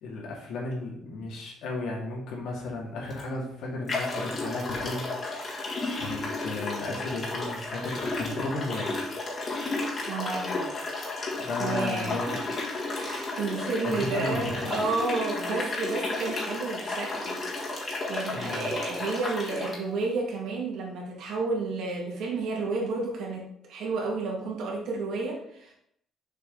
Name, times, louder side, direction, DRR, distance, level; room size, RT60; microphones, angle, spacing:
voice 1, 0.0-5.1 6.0-9.1 11.4-12.4 13.8-14.8 18.3-18.7, left 2 dB, 75° left, -2 dB, 2.3 m, -34 dB
sound 1, 3.1-3.2 3.9-19.8, left 2 dB, 35° left, 1.5 m, -33 dB
voice 2, 10.1-10.7 11.6-12.2 12.8-17.4 17.7-23.4 23.7-25.7, right 3 dB, 65° right, -2 dB, 2.1 m, -31 dB
6.6 x 5.2 x 3.9 m, 0.73 s
cardioid pair, 170°, 0 cm